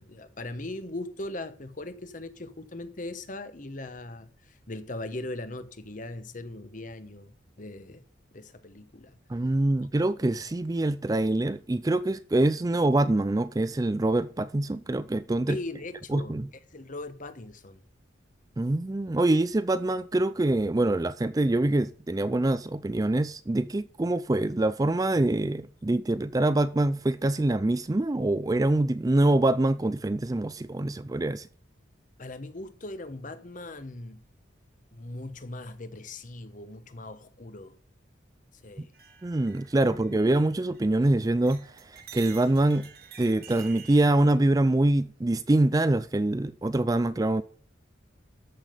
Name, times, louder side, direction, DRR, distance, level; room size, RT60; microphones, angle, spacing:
voice 1, 0.0-8.0 8.3-9.2 15.5-16.4 16.7-17.8 32.2-34.2 34.9-37.7 38.5-38.9 40.1-40.2, left 2 dB, 40° left, 1.0 m, -39 dB
voice 2, 9.3-15.6 16.1-16.5 18.6-31.5 38.8-38.9 39.2-42.9 43.2-47.4, right 2 dB, 20° right, 0.4 m, -25 dB
sound 1, 38.9-41.1 41.4-44.1, right 8 dB, 50° right, 1.5 m, -48 dB
13.5 x 5.9 x 5.1 m
head